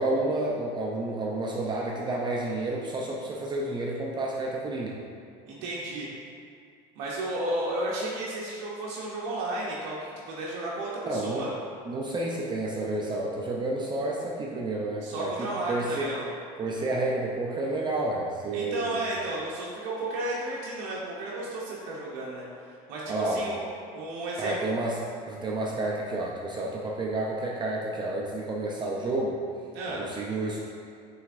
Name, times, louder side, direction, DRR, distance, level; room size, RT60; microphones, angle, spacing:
voice 1, 0.0-5.0 11.1-11.5 11.9-16.1 16.6-19.0 23.1-23.4 24.4-25.0 25.3-29.4 30.0-30.6, right 2 dB, 25° right, -3 dB, 0.5 m, -30 dB
voice 2, 5.5-6.1 7.0-11.5 15.0-16.3 18.5-22.5 22.9-23.7 23.9-24.7 29.7-30.0, right 1 dB, 80° right, -5 dB, 0.7 m, -33 dB
5.8 x 3.2 x 2.5 m, 2.4 s
supercardioid pair, 100°, 17 cm